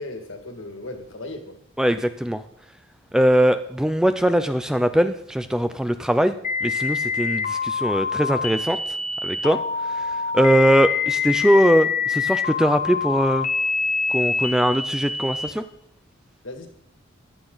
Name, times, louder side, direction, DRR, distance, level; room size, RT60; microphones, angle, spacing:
voice 1, 0.0-1.6 16.4-16.7, left 2 dB, 65° left, 5 dB, 2.1 m, -36 dB
voice 2, 1.8-2.4 3.1-6.3 6.6-8.8 9.2-9.6 9.9-13.5 14.1-15.6, equal, 5° right, 10 dB, 0.4 m, -21 dB
sound 1, 6.4-15.5, left 5 dB, 40° left, 0.8 m, -25 dB
14.5 x 10.0 x 3.9 m, 0.72 s
head